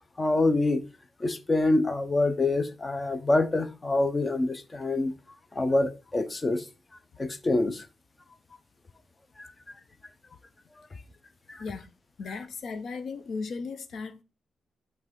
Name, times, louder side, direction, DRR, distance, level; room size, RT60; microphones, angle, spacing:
voice 1, 0.2-0.8 1.2-5.1 5.5-6.6 7.2-7.8 9.4-9.5 11.5-11.6, left 2 dB, 25° left, 0.8 m, -26 dB
voice 2, 11.6-11.9 12.2-14.2, left 4 dB, 65° left, 0.7 m, -36 dB
6.0 x 3.4 x 5.2 m
cardioid pair, 115°, 0 cm